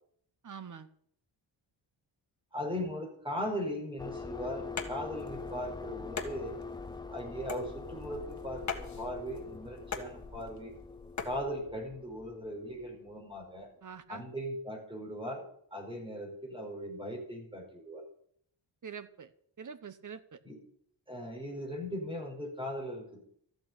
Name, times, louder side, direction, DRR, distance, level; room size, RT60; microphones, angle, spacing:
voice 1, 0.4-0.9 13.8-14.2 18.8-19.3 19.6-20.4, right 6 dB, 40° right, 13 dB, 1.0 m, -45 dB
voice 2, 2.5-6.6 7.1-10.7 11.2-13.7 14.1-15.5 15.7-18.0 20.4-20.6 21.1-23.3, equal, 10° right, 1 dB, 4.9 m, -38 dB
sound 1, 4.0-13.5, left 4 dB, 10° left, 0.5 m, -44 dB
sound 2, 4.6-11.4, left 5 dB, 35° left, 1.8 m, -43 dB
14.0 x 7.8 x 8.2 m, 0.65 s
wide cardioid pair, 130°, 46 cm